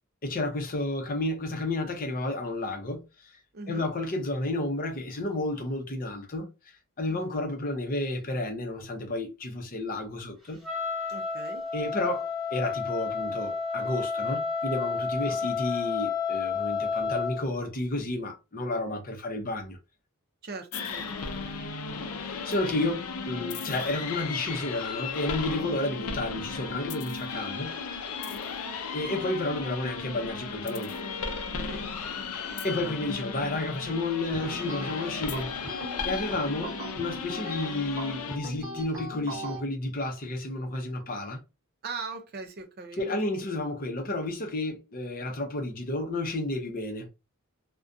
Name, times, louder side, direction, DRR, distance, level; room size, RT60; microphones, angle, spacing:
voice 1, 0.2-3.3 3.7-6.5 7.0-10.6 11.7-19.8 22.2-27.7 28.9-30.9 32.6-35.7 36.0-41.4 43.0-47.1, left 2 dB, 40° left, 0.7 m, -31 dB
voice 2, 3.5-3.9 7.1-7.3 11.1-11.6 15.1-15.4 20.4-21.1 31.7-31.8 41.8-43.5, right 4 dB, 45° right, 0.5 m, -40 dB
Wind instrument woodwind instrument, 10.6-17.4, left 5 dB, ahead, 0.8 m, -31 dB
sound 1, 20.7-38.4, left 5 dB, 80° left, 0.5 m, -35 dB
sound 2, 34.3-39.6, equal, 20° right, 1.1 m, -40 dB
2.4 x 2.2 x 2.5 m
head